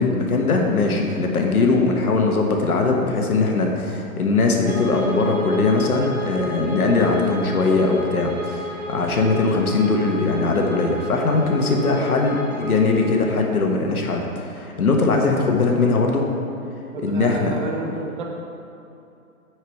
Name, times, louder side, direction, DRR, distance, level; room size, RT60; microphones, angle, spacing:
voice 1, 0.0-16.2 17.0-17.5, left 3 dB, 85° left, 1 dB, 1.5 m, -20 dB
Bowed string instrument, 4.6-13.2, equal, 10° right, 1.2 m, -31 dB
voice 2, 16.9-18.3, right 3 dB, 35° right, 0 dB, 1.1 m, -30 dB
9.3 x 4.8 x 4.6 m, 2.7 s
hypercardioid pair, 150°, 43 cm